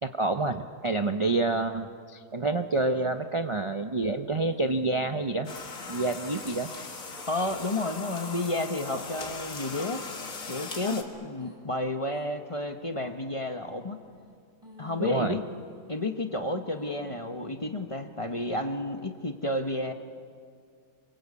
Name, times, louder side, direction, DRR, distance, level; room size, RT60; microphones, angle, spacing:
voice 1, 0.0-5.5 5.9-6.7 15.0-15.4, right 2 dB, 30° right, 7 dB, 0.5 m, -28 dB
sound 1, 4.4-5.6 5.8-6.4 6.8-7.1 7.6-8.2 8.7-9.4 9.8-11.6 12.1-12.3 12.8-13.3 13.8-14.3 14.6-16.2 16.7-17.3, equal, 15° right, 4.1 m, -51 dB
sound 2, 5.4-11.0, left 4 dB, 55° left, 2.4 m, -39 dB
voice 2, 7.3-10.0 10.5-14.0 14.8-15.4 15.9-19.9, left 2 dB, 25° left, 6 dB, 1.0 m, -31 dB
27.0 x 23.0 x 8.4 m, 2.2 s
omnidirectional pair, 1.7 m